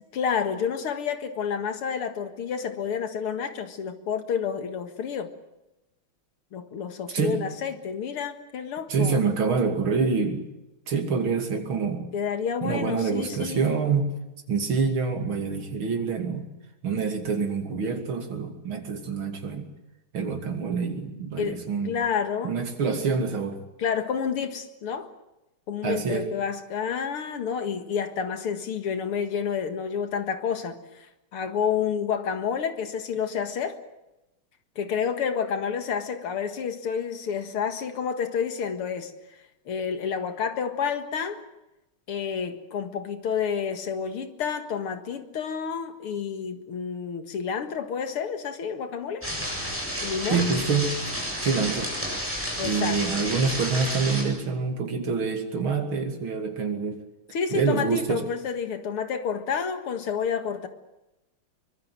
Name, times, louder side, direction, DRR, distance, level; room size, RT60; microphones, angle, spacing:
voice 1, 0.1-5.3 6.5-9.2 12.1-13.7 21.4-22.5 23.8-25.1 25.7-31.1 31.3-33.8 34.8-39.1 39.7-41.4 42.1-49.3 50.0-50.4 52.6-53.2 57.3-60.7, left 7 dB, 90° left, 8 dB, 2.7 m, -29 dB
voice 2, 8.9-10.5 10.9-12.1 12.6-14.2 14.5-16.5 16.8-19.7 20.1-22.0 22.4-23.6 25.8-26.3 50.3-51.0 51.4-51.9 52.6-57.0 57.5-58.2, right 5 dB, 70° right, 4 dB, 3.5 m, -26 dB
sound 1, 49.2-54.2, equal, 5° right, 7.8 m, -31 dB
24.5 x 22.0 x 7.7 m, 0.96 s
omnidirectional pair, 2.4 m